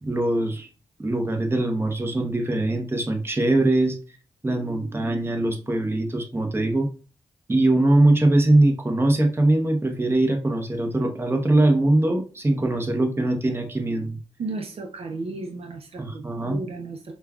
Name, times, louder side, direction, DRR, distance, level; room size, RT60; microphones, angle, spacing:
voice 1, 0.0-0.7 1.0-4.0 4.4-6.9 7.5-14.2 16.0-16.6, right 2 dB, 20° right, 3 dB, 0.9 m, -22 dB
voice 2, 14.4-17.1, right 3 dB, 60° right, 4 dB, 0.6 m, -34 dB
5.1 x 2.3 x 2.4 m, 0.36 s
cardioid pair, 60°, 11 cm